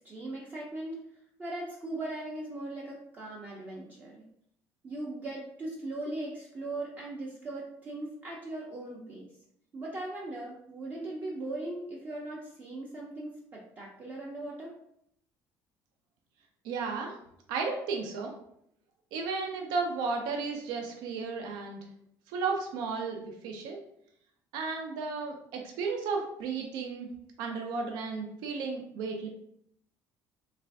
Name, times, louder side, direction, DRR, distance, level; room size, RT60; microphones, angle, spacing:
voice 1, 0.0-1.0 1.4-4.2 4.8-9.3 9.7-14.7, right 2 dB, 25° right, -3 dB, 0.5 m, -39 dB
voice 2, 16.6-17.1 17.5-18.3 19.1-21.8 22.3-23.8 24.5-27.1 27.4-29.3, right 4 dB, 85° right, 2 dB, 0.5 m, -33 dB
3.3 x 2.4 x 3.4 m, 0.72 s
cardioid pair, 160°, 7 cm